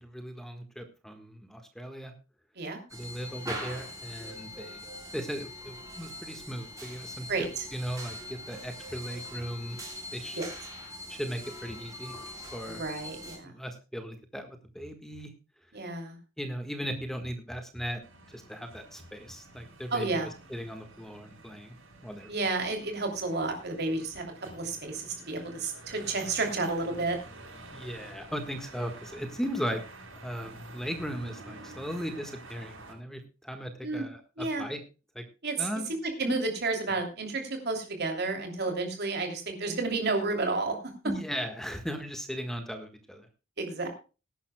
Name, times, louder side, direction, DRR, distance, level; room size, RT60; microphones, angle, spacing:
voice 1, 0.0-2.1 2.9-4.8 5.1-9.8 10.1-10.4 11.1-12.1 12.5-12.8 13.4-15.3 16.4-18.0 18.3-21.7 22.0-22.3 27.7-29.8 30.1-34.8 35.1-35.2 35.6-35.9 41.0-43.3, equal, ahead, 6 dB, 1.5 m, -37 dB
sound 1, 2.9-13.4, equal, 15° right, 6.7 m, -42 dB
voice 2, 7.3-7.7 10.4-10.5 12.8-13.5 15.7-16.2 19.9-20.3 22.3-27.2 33.8-34.0 34.4-34.6 35.4-35.7 36.0-40.8 43.6-43.9, right 3 dB, 55° right, 4 dB, 3.0 m, -31 dB
sound 2, 18.0-32.9, right 2 dB, 75° right, 7.5 m, -49 dB
20.5 x 11.5 x 2.3 m, 0.32 s
head